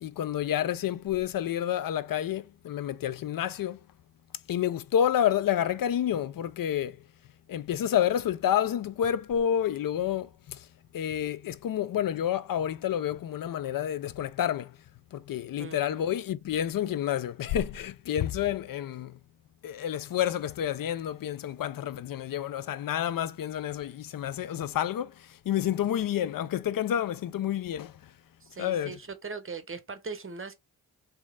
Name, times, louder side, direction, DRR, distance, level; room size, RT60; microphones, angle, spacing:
voice 1, 0.0-3.8 4.5-7.0 7.5-10.7 10.9-14.8 15.1-19.2 19.6-28.1 28.6-29.0, left 10 dB, 55° left, 0.5 m, -29 dB
voice 2, 15.6-16.1 28.4-30.5, right 4 dB, 30° right, 0.8 m, -40 dB
3.1 x 2.8 x 3.5 m
supercardioid pair, 50°, 41 cm